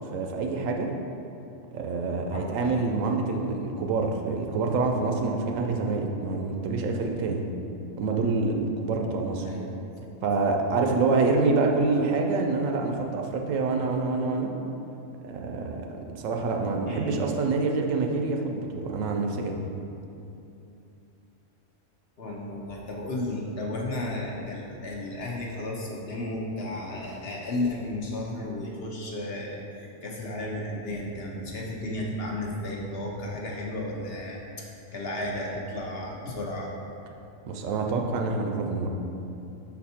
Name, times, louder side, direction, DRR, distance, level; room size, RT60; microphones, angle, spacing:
voice 1, 0.1-0.9 1.7-7.5 8.0-9.5 10.2-14.5 15.2-19.6 37.5-38.9, right 3 dB, 75° right, 2 dB, 0.9 m, -26 dB
voice 2, 9.4-10.1 16.9-17.3 22.2-36.7, left 1 dB, 55° left, -2 dB, 0.8 m, -33 dB
5.5 x 4.2 x 4.2 m, 2.7 s
omnidirectional pair, 1.4 m